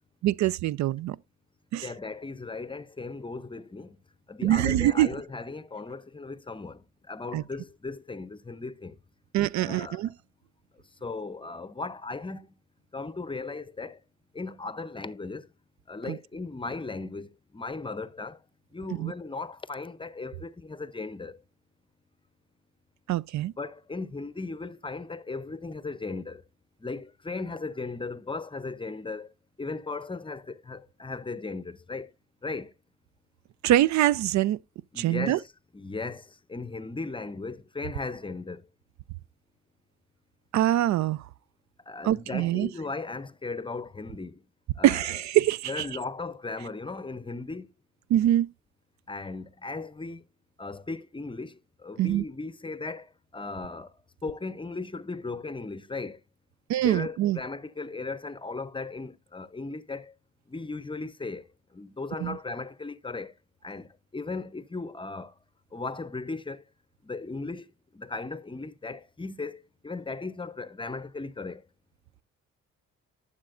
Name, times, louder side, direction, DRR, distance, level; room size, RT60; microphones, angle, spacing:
voice 1, 0.2-1.2 1.7-1.9 4.4-5.1 7.3-7.4 9.3-10.1 16.1-16.2 18.9-19.1 23.1-23.5 33.6-34.6 35.0-35.4 40.5-41.3 42.0-42.7 44.8-45.9 48.1-48.5 52.0-52.2 56.7-57.4 62.2-62.4, right 13 dB, 70° right, 0.4 m, -24 dB
voice 2, 1.8-4.0 4.3-9.0 9.6-10.1 11.0-12.5 12.9-14.0 14.3-15.5 15.9-18.4 18.7-21.4 23.3-26.4 26.8-32.1 32.4-32.7 34.9-35.5 35.7-38.7 41.9-44.4 44.8-45.1 45.7-47.7 49.1-50.2 50.6-56.2 56.8-60.1 60.5-63.3 63.6-65.4 65.7-66.7 67.0-67.7 67.9-71.6, left 3 dB, 15° left, 0.6 m, -37 dB
12.0 x 7.2 x 2.5 m
cardioid pair, 90°, 30 cm